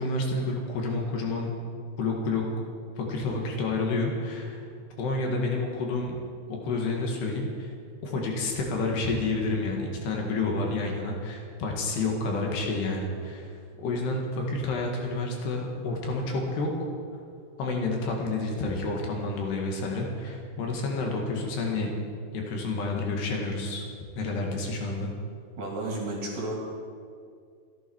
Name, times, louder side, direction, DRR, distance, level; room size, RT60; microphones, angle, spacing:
voice 1, 0.0-1.5 2.0-2.4 3.0-4.7 5.0-6.2 6.5-7.7 8.0-16.7 17.6-21.9 22.3-23.8 24.2-25.1, left 3 dB, 70° left, 0 dB, 3.9 m, -29 dB
voice 2, 25.6-26.6, right 2 dB, 55° right, -1 dB, 3.7 m, -32 dB
26.0 x 12.0 x 4.7 m, 2.3 s
omnidirectional pair, 5.1 m